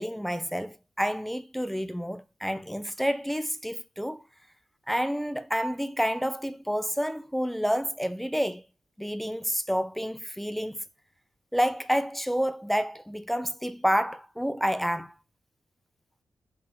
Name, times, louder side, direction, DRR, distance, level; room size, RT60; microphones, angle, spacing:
voice 1, 0.0-4.2 4.9-8.6 9.0-10.8 11.5-15.1, equal, ahead, 0.5 m, -29 dB
6.0 x 3.3 x 4.8 m
wide cardioid pair, 125°, 7 cm